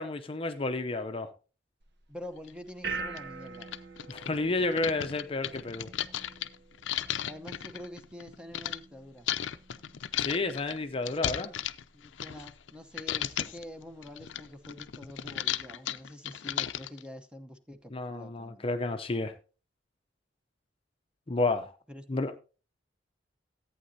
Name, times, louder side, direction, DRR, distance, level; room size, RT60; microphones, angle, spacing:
voice 1, 0.0-1.3 4.1-5.9 10.2-11.5 17.9-19.3 21.3-21.8 22.1-22.3, left 3 dB, 30° left, 0.6 m, -31 dB
sound 1, 1.8-15.3, right 4 dB, 65° right, 1.1 m, -46 dB
voice 2, 2.1-3.7 7.2-9.3 11.9-18.7 21.9-22.4, left 1 dB, 5° right, 0.8 m, -46 dB
sound 2, 2.5-2.6 3.2-3.3 3.5-8.8 9.3-12.7 13.0-13.6 14.0-17.0, left 11 dB, 80° left, 0.5 m, -35 dB
14.5 x 8.7 x 2.7 m
head